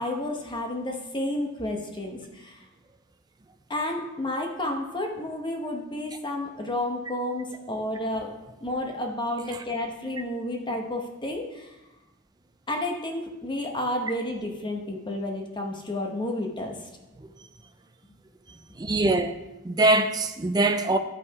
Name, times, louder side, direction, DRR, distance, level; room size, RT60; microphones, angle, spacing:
voice 1, 0.0-2.6 3.7-8.3 8.6-11.8 12.7-16.9, left 1 dB, 20° left, 0.9 m, -31 dB
voice 2, 18.8-19.3 19.6-21.0, right 2 dB, 20° right, 0.4 m, -23 dB
12.0 x 5.8 x 4.6 m
head